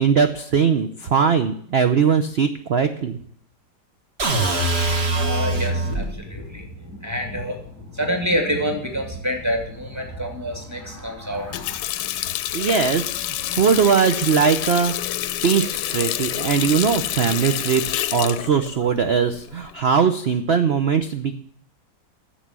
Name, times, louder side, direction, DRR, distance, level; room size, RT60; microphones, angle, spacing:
voice 1, 0.0-3.2 12.5-13.1 13.5-14.9 15.4-21.4, right 6 dB, 70° right, 8 dB, 0.6 m, -20 dB
sound 1, 4.2-6.1, right 2 dB, 35° right, 1.7 m, -22 dB
voice 2, 5.1-7.6 7.9-11.8, equal, 10° right, 3 dB, 2.3 m, -27 dB
Water tap faucet, 11.3-19.8, left 13 dB, 75° left, 1.2 m, -28 dB
10.5 x 7.4 x 7.4 m, 0.64 s
omnidirectional pair, 2.0 m